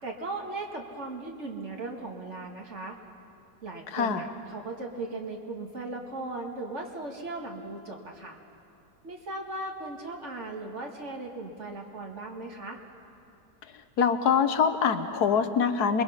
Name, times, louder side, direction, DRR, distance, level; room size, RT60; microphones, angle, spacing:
voice 1, 0.0-3.0 3.6-8.4 9.0-12.8, right 2 dB, 45° right, 2 dB, 2.1 m, -37 dB
voice 2, 3.9-4.2 14.0-16.0, left 6 dB, 70° left, 9 dB, 1.5 m, -24 dB
27.0 x 21.5 x 5.7 m, 2.7 s
omnidirectional pair, 1.8 m